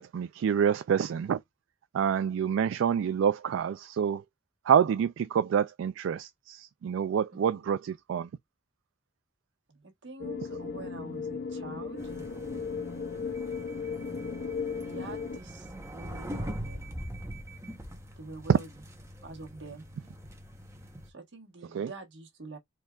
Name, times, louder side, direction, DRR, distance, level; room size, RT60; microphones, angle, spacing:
voice 1, 0.0-1.4 1.9-4.2 4.7-8.3 21.7-21.9, right 8 dB, 80° right, 0.3 m, -27 dB
voice 2, 7.3-7.8 9.7-12.2 14.7-17.0 18.2-18.7 19.2-19.8 21.0-22.6, right 3 dB, 65° right, 1.4 m, -46 dB
sound 1, 10.2-15.4, left 5 dB, 55° left, 0.5 m, -36 dB
sound 2, 12.0-21.1, equal, 15° right, 0.9 m, -42 dB
4.5 x 3.4 x 2.4 m
head